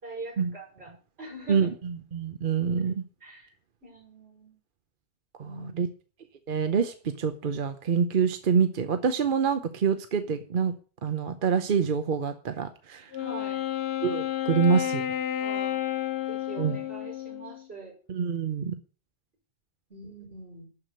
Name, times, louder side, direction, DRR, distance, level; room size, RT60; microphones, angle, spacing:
voice 1, 0.0-0.9 1.2-1.7 2.8-2.9 3.2-3.5 3.8-4.5 5.4-5.9 13.2-13.6 15.4-15.8 16.3-17.9 19.9-20.7, right 2 dB, 70° right, -4 dB, 6.4 m, -43 dB
voice 2, 2.1-3.0 5.4-5.9 6.5-10.7 11.0-13.1 14.0-15.1 16.6-16.8 18.1-18.8, right 6 dB, 55° right, 9 dB, 0.9 m, -26 dB
Wind instrument woodwind instrument, 13.1-17.7, left 11 dB, 70° left, 0.9 m, -31 dB
12.0 x 4.9 x 7.5 m, 0.39 s
omnidirectional pair, 1.1 m